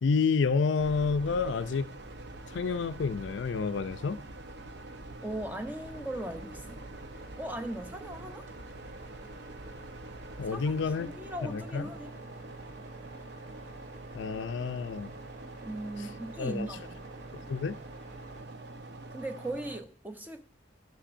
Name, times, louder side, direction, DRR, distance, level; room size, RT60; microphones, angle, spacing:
voice 1, 0.0-1.9 2.5-4.2 10.4-11.1 11.4-11.8 14.1-15.1 16.4-16.7 17.5-17.7, left 5 dB, 80° left, 0.4 m, -29 dB
sound 1, 0.8-19.8, right 2 dB, 65° right, 0.6 m, -45 dB
voice 2, 5.2-6.8 7.4-8.5 10.5-12.1 15.6-17.0 19.1-20.4, right 1 dB, 10° right, 0.6 m, -39 dB
sound 2, 5.5-18.4, right 1 dB, 40° right, 0.9 m, -52 dB
10.0 x 6.1 x 2.5 m
head